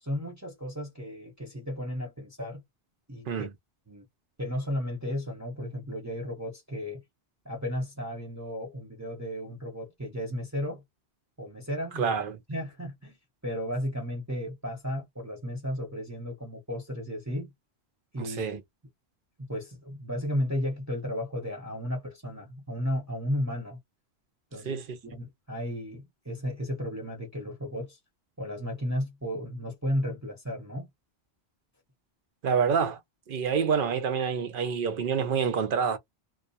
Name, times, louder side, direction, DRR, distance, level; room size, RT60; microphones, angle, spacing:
voice 1, 0.0-2.6 3.1-3.5 3.9-4.0 4.4-7.0 7.4-10.8 11.4-12.1 12.5-13.2 13.4-17.5 18.1-18.6 19.4-23.8 24.5-24.8 25.1-28.0 28.4-30.9, equal, 15° right, 0.8 m, -34 dB
voice 2, 11.9-12.4 18.2-18.6 24.7-25.0 32.4-33.0 33.3-36.0, right 6 dB, 60° right, 0.7 m, -27 dB
2.3 x 2.1 x 2.7 m
omnidirectional pair, 1.1 m